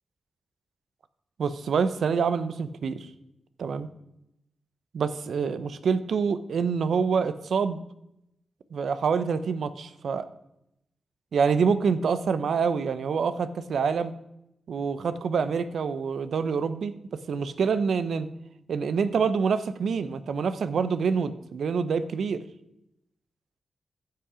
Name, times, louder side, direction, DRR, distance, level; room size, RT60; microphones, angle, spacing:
voice 1, 1.4-3.0 3.6-3.9 4.9-7.8 8.7-10.3 11.3-14.1 14.7-16.9 17.3-18.3 18.7-22.4, right 5 dB, 85° right, 14 dB, 0.6 m, -26 dB
15.0 x 5.8 x 4.9 m, 0.83 s
wide cardioid pair, 110°, 0 cm